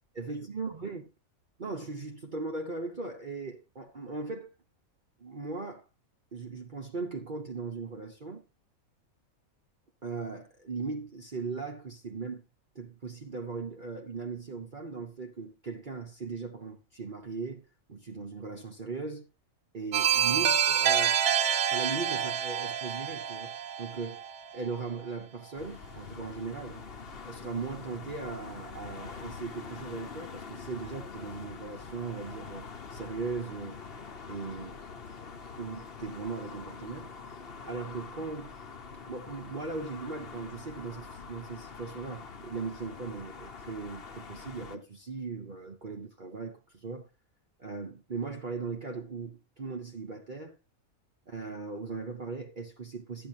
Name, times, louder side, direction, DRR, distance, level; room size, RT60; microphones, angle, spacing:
voice 1, 0.1-1.1 1.6-4.5 5.2-5.9 6.3-8.4 10.0-12.4 12.7-19.3 19.7-24.2 24.5-26.8 27.2-33.8 34.3-34.8 35.6-37.1 37.7-38.5 39.1-47.1 47.6-50.6 51.3-53.3, right 4 dB, 40° right, 1.0 m, -38 dB
sound 1, 19.9-24.7, right 8 dB, 75° right, 1.3 m, -27 dB
sound 2, 25.6-44.8, left 5 dB, 45° left, 1.1 m, -45 dB
12.0 x 9.8 x 2.7 m
omnidirectional pair, 1.5 m